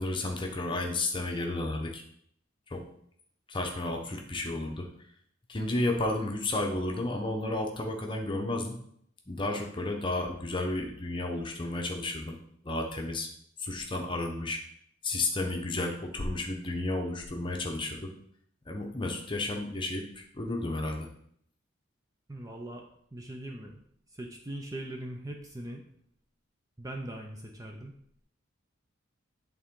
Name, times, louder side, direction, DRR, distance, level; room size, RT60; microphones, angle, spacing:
voice 1, 0.0-2.0 2.7-2.8 3.5-4.9 5.5-8.7 9.3-12.3 12.6-13.3 13.6-14.6 15.0-18.1 18.7-21.1, left 2 dB, 25° left, 2 dB, 0.9 m, -32 dB
voice 2, 22.3-22.8 23.1-23.8 24.1-25.8 26.8-27.9, right 1 dB, 15° right, 2 dB, 0.5 m, -40 dB
8.4 x 3.7 x 3.7 m, 0.67 s
head